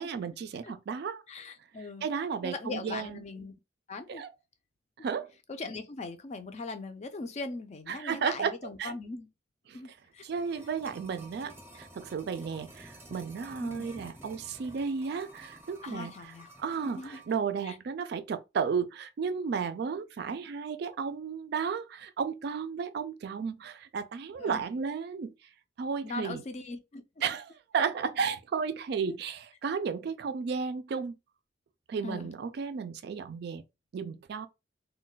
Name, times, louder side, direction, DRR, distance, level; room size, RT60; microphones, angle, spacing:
voice 1, 0.0-1.2 2.0-3.2 4.1-4.3 5.0-5.3 7.9-8.5 8.8-8.9 9.7-9.8 10.2-16.1 16.6-25.3 25.8-26.4 27.2-31.2 31.9-33.6 33.9-34.5, right 6 dB, 60° right, 0.3 m, -33 dB
voice 2, 1.3-2.1 2.4-3.5 3.9-4.2 5.0-5.1 5.5-9.3 9.7-10.3 13.6-13.9 15.8-16.5 16.8-17.2 17.6-17.8 24.3-24.6 26.0-27.0 29.0-29.2 32.0-32.3, left 3 dB, 35° left, 0.4 m, -40 dB
sound 1, 10.0-17.4 17.7-17.8, right 1 dB, 15° right, 0.6 m, -51 dB
2.2 x 2.2 x 3.9 m
head